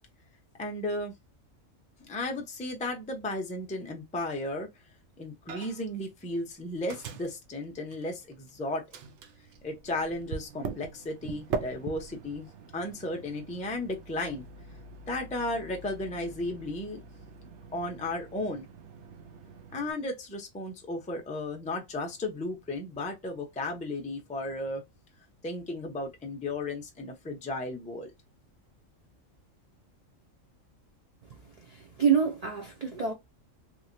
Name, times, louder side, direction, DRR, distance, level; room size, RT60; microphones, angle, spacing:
voice 1, 0.6-1.1 2.0-4.7 5.2-8.8 9.6-12.5 12.7-14.4 15.1-17.0 17.7-18.6 19.7-24.8 25.4-28.1, left 2 dB, 10° left, 0.3 m, -34 dB
Microwave oven, 5.5-6.0 6.2-8.5 8.9-19.9, right 5 dB, 65° right, 0.8 m, -42 dB
voice 2, 31.6-33.1, right 6 dB, 85° right, 0.3 m, -27 dB
3.0 x 2.7 x 2.5 m
omnidirectional pair, 1.4 m